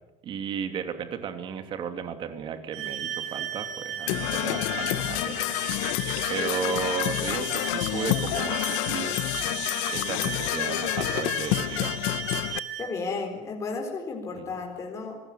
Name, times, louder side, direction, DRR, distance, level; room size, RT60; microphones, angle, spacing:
voice 1, 0.2-5.9 6.3-9.2 9.9-12.1 14.3-14.5, right 7 dB, 35° right, 8 dB, 2.8 m, -34 dB
sound 1, 2.7-12.9, right 10 dB, 80° right, 7.4 m, -36 dB
Percussion / Brass instrument, 4.1-12.6, left 19 dB, 75° left, 0.8 m, -28 dB
voice 2, 12.8-15.2, left 4 dB, 20° left, 1 dB, 4.2 m, -33 dB
26.0 x 19.5 x 9.4 m, 1.1 s
cardioid pair, 165°, 14 cm